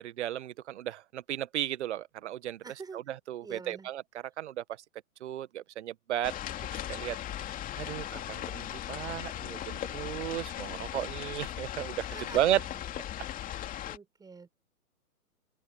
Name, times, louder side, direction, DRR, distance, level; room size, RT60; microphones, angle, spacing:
voice 1, 0.0-2.6 2.9-4.0 4.4-4.6 5.2-6.4 6.6-12.7, right 12 dB, 50° right, 1.5 m, -34 dB
voice 2, 2.6-3.0 3.4-3.9 12.1-12.9 13.5-14.5, right 5 dB, 10° right, 4.8 m, -47 dB
sound 1, 6.2-14.0, left 12 dB, 20° left, 2.6 m, -38 dB
open air
hypercardioid pair, 125°, 44 cm